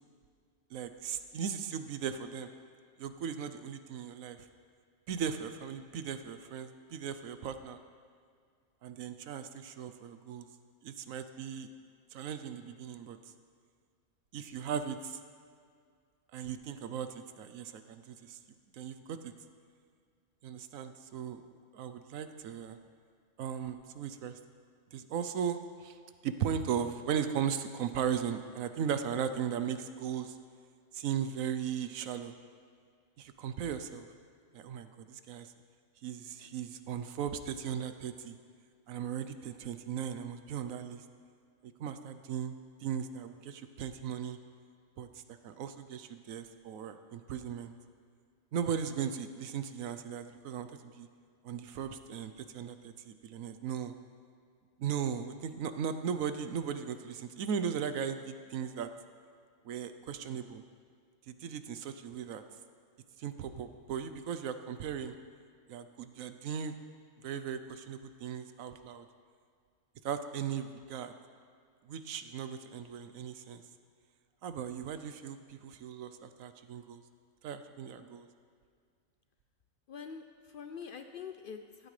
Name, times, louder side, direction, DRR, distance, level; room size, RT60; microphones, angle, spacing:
voice 1, 0.7-2.5 3.0-4.4 5.1-7.8 8.8-10.5 10.8-11.7 12.1-13.2 14.3-15.2 16.3-18.4 18.7-19.3 20.4-21.4 21.7-22.8 23.4-24.4 24.9-26.0 26.2-30.3 30.9-32.3 33.2-34.1 34.5-35.5 36.0-38.4 38.9-41.0 41.8-44.4 45.0-47.7 48.5-51.1 51.4-53.9 54.8-58.9 59.6-60.6 61.3-62.4 63.2-65.1 65.7-66.7 67.2-69.0 70.0-71.1 71.9-73.6 74.4-77.0 77.4-78.3, right 8 dB, 75° right, 10 dB, 1.1 m, -37 dB
voice 2, 79.9-81.9, left 6 dB, 75° left, 7 dB, 0.5 m, -45 dB
15.5 x 12.5 x 3.2 m, 2.1 s
omnidirectional pair, 1.5 m